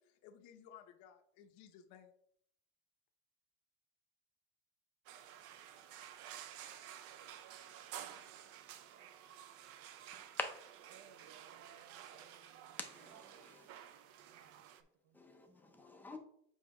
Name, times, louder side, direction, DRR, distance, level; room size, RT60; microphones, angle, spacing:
voice 1, 0.0-2.1, left 8 dB, 55° left, 0.8 m, -58 dB
sound 1, 5.1-14.8, right 10 dB, 45° right, 0.5 m, -53 dB
voice 2, 10.9-12.8 14.3-14.7 15.0-15.4, right 6 dB, 75° right, 0.8 m, -65 dB
voice 3, 12.8-13.7 15.1-16.2, left 2 dB, 5° left, 0.5 m, -51 dB
7.2 x 2.8 x 4.7 m
cardioid pair, 165°, 33 cm